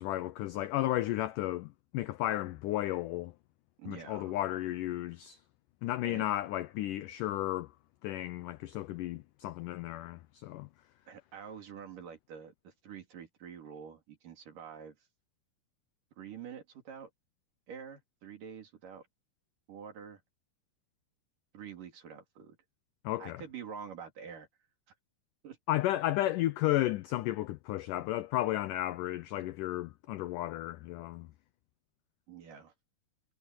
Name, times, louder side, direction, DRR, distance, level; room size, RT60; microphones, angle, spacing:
voice 1, 0.0-3.3 3.9-5.4 5.8-7.7 8.0-10.7 23.0-23.4 25.7-31.3, left 15 dB, 90° left, 1.8 m, -33 dB
voice 2, 3.8-4.4 6.0-6.2 11.1-15.0 16.2-17.1 17.7-19.1 19.7-20.2 21.5-22.6 23.2-24.5 25.4-25.6 32.3-32.7, right 7 dB, 55° right, 4.5 m, -47 dB
omnidirectional pair, 4.6 m